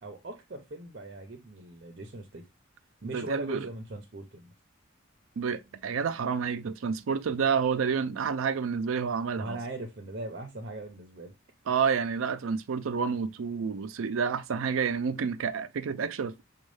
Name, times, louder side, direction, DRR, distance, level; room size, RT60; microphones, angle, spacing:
voice 1, 0.0-2.4 3.0-4.5 9.4-11.3, right 2 dB, 50° right, 0.7 m, -39 dB
voice 2, 3.1-3.7 5.4-9.6 11.7-16.4, right 6 dB, 85° right, 0.4 m, -29 dB
6.2 x 2.3 x 3.2 m
head